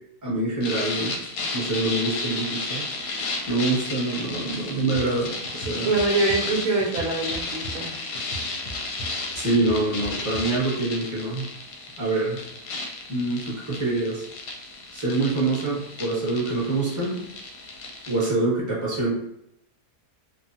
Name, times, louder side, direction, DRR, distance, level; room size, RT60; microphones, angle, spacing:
voice 1, 0.2-1.1 1.5-2.8 3.5-5.9 9.3-11.5 12.0-12.4 13.1-14.2 14.9-17.2 18.1-19.1, right 2 dB, 15° right, -6 dB, 0.8 m, -25 dB
sound 1, 0.6-18.3, left 3 dB, 90° left, 1.2 m, -33 dB
sound 2, 4.9-5.0 5.4-6.4 6.8-7.9 8.1-10.4, right 1 dB, 55° left, 0.7 m, -38 dB
voice 2, 5.9-8.0, right 3 dB, 70° right, -3 dB, 1.1 m, -24 dB
3.1 x 2.0 x 2.6 m, 0.79 s
omnidirectional pair, 1.7 m